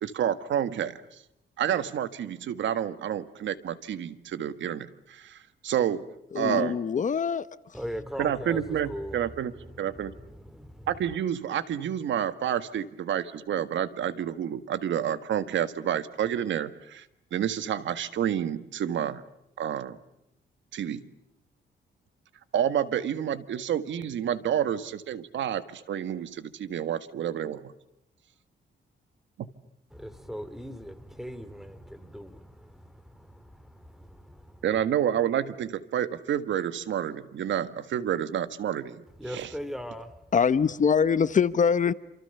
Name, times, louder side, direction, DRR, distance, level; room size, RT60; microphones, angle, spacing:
voice 1, 0.0-1.2 1.6-6.0 6.3-6.8 8.2-10.1 10.9-17.0 17.3-19.2 19.6-20.0 20.7-21.0 22.5-27.7 34.6-39.5, right 9 dB, 85° right, 1.7 m, -29 dB
voice 2, 6.3-7.5 40.3-41.9, left 6 dB, 45° left, 1.0 m, -23 dB
voice 3, 7.7-8.6 8.9-9.2 10.3-10.9 29.9-32.8 33.2-33.3 33.6-33.7 34.3-34.4 39.2-40.1, equal, ahead, 2.6 m, -38 dB
28.5 x 28.0 x 7.0 m
cardioid pair, 120°, 19 cm